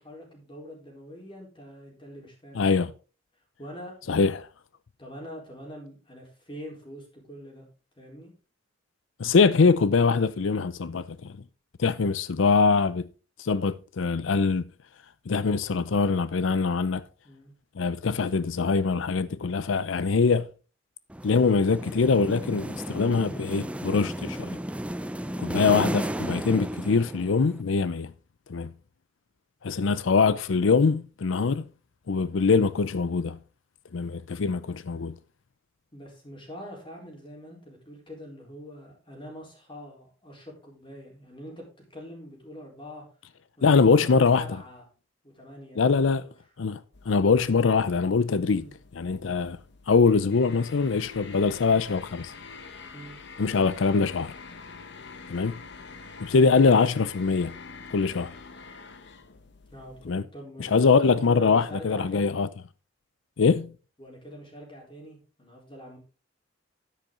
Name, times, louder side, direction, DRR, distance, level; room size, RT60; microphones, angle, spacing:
voice 1, 0.0-2.9 3.6-3.9 5.0-7.7 8.0-8.3 17.2-17.5 35.9-43.0 43.6-44.8 45.2-46.3 48.5-48.7 52.9-53.2 59.7-62.3 64.0-66.0, equal, 25° left, 4.0 m, -44 dB
voice 2, 2.6-2.9 4.1-4.5 9.2-11.4 11.8-13.1 13.4-14.7 15.3-17.0 17.8-20.5 21.2-24.6 25.4-28.1 28.5-28.7 29.6-31.7 32.1-33.4 33.9-35.1 43.6-44.4 45.8-46.2 46.6-46.8 47.1-48.6 48.9-49.6 49.9-52.3 53.4-54.3 55.3-55.5 56.2-57.6 57.9-58.3 60.1-60.2 60.6-62.5 63.4-63.7, left 4 dB, 85° left, 0.5 m, -23 dB
sound 1, 21.1-27.6, right 1 dB, 5° right, 0.5 m, -33 dB
sound 2, 46.9-60.2, left 4 dB, 65° left, 1.3 m, -46 dB
10.0 x 9.3 x 3.8 m
head